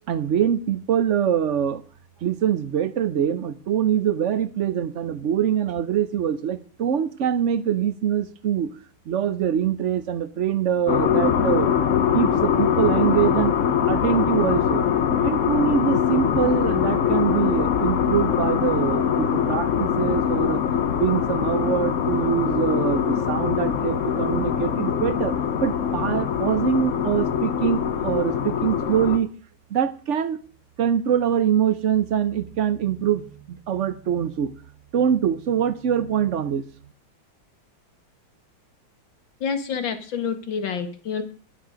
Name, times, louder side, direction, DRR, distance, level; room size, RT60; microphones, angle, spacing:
voice 1, 0.1-1.8 2.2-8.7 9.1-11.7 12.1-13.6 13.9-14.8 15.2-20.6 21.0-25.3 25.6-29.3 29.7-30.4 30.8-33.2 33.5-34.5 34.9-36.6, right 9 dB, 65° right, 0.7 m, -24 dB
sound 1, 10.9-29.2, left 8 dB, 50° left, 1.0 m, -23 dB
voice 2, 39.4-41.2, left 6 dB, 70° left, 2.3 m, -28 dB
11.5 x 11.5 x 5.1 m
omnidirectional pair, 2.2 m